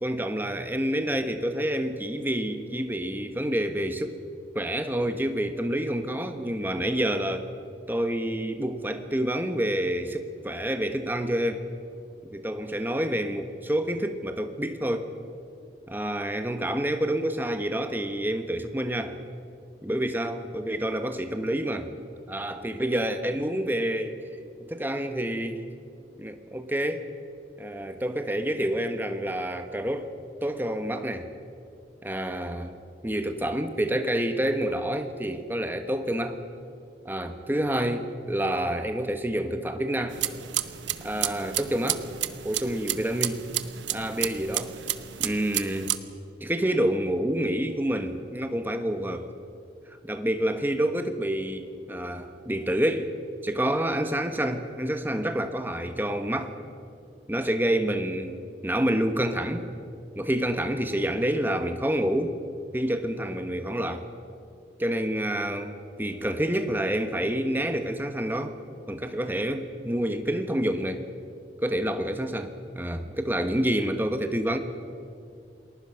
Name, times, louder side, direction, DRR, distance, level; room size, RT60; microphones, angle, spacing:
voice 1, 0.0-4.2 4.5-7.5 7.9-11.6 12.3-15.1 15.9-19.2 19.8-21.9 22.3-24.2 24.7-25.6 26.2-27.1 27.6-30.1 30.4-31.3 32.0-32.7 33.0-36.4 37.0-40.2 41.0-42.0 42.4-43.5 43.9-44.7 45.2-46.0 46.4-49.3 50.0-53.1 53.4-56.5 57.3-59.7 60.2-62.4 62.7-64.1 64.8-68.6 68.9-71.1 71.6-74.6, right 1 dB, 10° right, 7 dB, 1.2 m, -28 dB
sound 1, 40.1-46.0, right 13 dB, 90° right, 1.0 m, -31 dB
29.5 x 20.5 x 5.8 m, 2.6 s
head